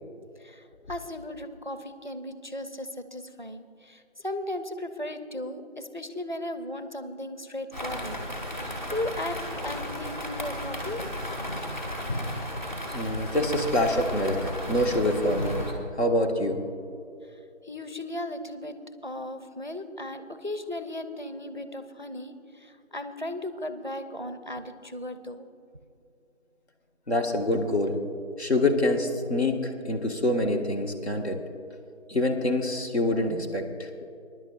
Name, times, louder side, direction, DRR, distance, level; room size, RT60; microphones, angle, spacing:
voice 1, 0.4-8.2 8.9-11.1 17.2-25.5, left 1 dB, 40° right, 10 dB, 0.5 m, -36 dB
sound 1, 7.7-15.7, left 1 dB, 40° left, 1.9 m, -34 dB
voice 2, 12.9-15.6 16.0-16.6 27.1-28.0 28.4-31.4 32.1-34.1, left 1 dB, 60° left, 2 dB, 1.6 m, -26 dB
23.5 x 11.0 x 2.5 m, 2.6 s
figure-of-eight pair, 175°, 36 cm